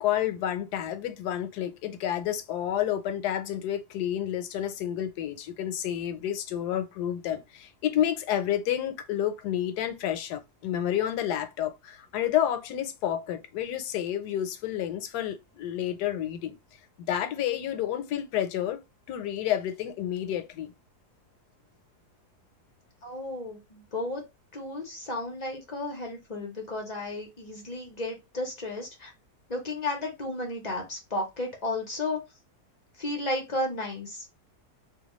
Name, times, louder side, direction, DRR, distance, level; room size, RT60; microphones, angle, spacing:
voice 1, 0.0-16.5 17.0-18.8 19.1-20.7, left 11 dB, 80° left, 1.1 m, -30 dB
voice 2, 23.0-24.2 24.5-29.1 29.5-32.2 33.0-34.3, left 2 dB, 55° left, 0.4 m, -33 dB
2.8 x 2.2 x 2.9 m
omnidirectional pair, 1.7 m